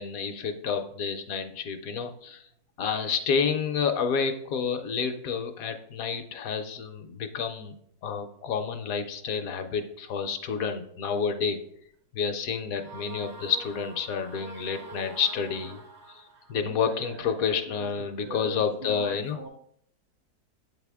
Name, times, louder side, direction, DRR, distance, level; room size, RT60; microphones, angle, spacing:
voice 1, 0.0-2.4 2.8-7.7 8.0-11.6 12.1-15.8 16.1-16.2 16.5-19.4, left 6 dB, 70° left, 7 dB, 1.0 m, -29 dB
sound 1, 12.8-16.6, right 3 dB, 25° right, 0.3 m, -45 dB
voice 2, 16.3-17.9 18.2-19.5, right 2 dB, 75° right, 2 dB, 1.3 m, -44 dB
7.7 x 4.1 x 3.5 m, 0.69 s
omnidirectional pair, 1.6 m